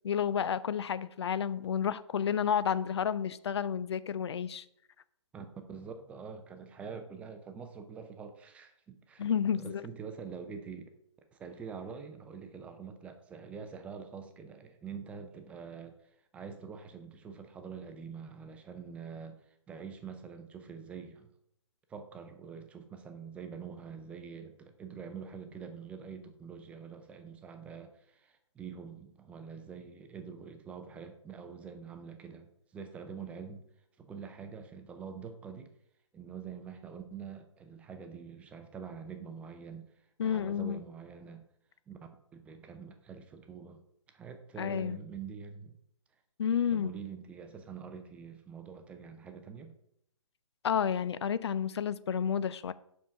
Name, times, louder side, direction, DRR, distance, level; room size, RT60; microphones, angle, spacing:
voice 1, 0.0-4.6 9.2-9.8 40.2-40.8 44.6-45.0 46.4-47.0 50.6-52.7, left 8 dB, 55° left, 16 dB, 0.4 m, -31 dB
voice 2, 5.3-9.3 9.5-10.8 11.3-21.3 21.9-33.7 34.0-35.7 36.1-39.9 40.2-41.4 41.9-42.0 42.3-43.8 44.1-45.7 46.7-49.7, right 6 dB, 10° right, 7 dB, 0.5 m, -45 dB
5.5 x 5.1 x 5.8 m, 0.74 s
figure-of-eight pair, 140°, 16 cm